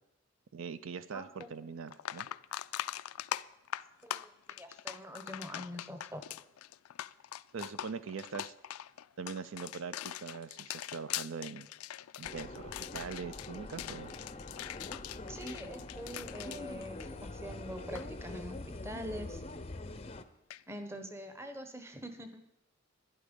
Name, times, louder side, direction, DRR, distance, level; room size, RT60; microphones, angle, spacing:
voice 1, 0.5-2.3 7.5-8.5 9.2-11.7 12.2-14.1, right 5 dB, 70° right, 14 dB, 0.4 m, -42 dB
voice 2, 1.1-1.5 4.0-4.3 4.6-6.2 15.3-19.4 20.7-22.4, equal, 10° right, 8 dB, 0.9 m, -44 dB
sound 1, 1.4-1.5 1.9-17.5 17.8-18.1 20.5-20.6, left 12 dB, 85° left, 0.3 m, -42 dB
sound 2, 12.2-20.2, left 2 dB, 25° left, 0.5 m, -44 dB
12.0 x 11.0 x 5.2 m, 0.85 s
head